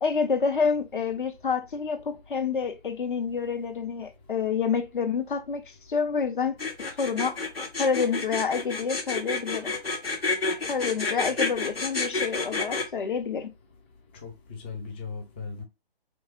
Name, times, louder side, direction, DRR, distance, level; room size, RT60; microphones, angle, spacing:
voice 1, 0.0-6.6 7.0-7.4 7.8-9.7 10.7-13.5, left 5 dB, 55° left, 1.0 m, -28 dB
sound 1, 6.6-12.8, left 3 dB, 75° left, 2.0 m, -29 dB
voice 2, 14.1-15.6, left 5 dB, 10° left, 0.5 m, -38 dB
3.5 x 3.2 x 4.3 m
figure-of-eight pair, 130°, 30 cm